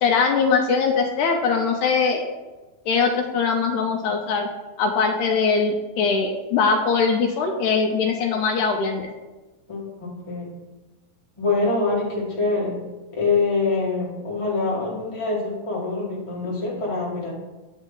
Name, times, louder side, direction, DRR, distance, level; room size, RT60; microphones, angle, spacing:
voice 1, 0.0-2.2 2.9-4.5 4.8-9.1, left 5 dB, 75° left, 2 dB, 2.0 m, -21 dB
voice 2, 9.7-10.5 11.4-12.8 13.1-17.3, left 3 dB, 30° left, -5 dB, 0.6 m, -25 dB
8.4 x 5.3 x 3.8 m, 1.1 s
omnidirectional pair, 3.9 m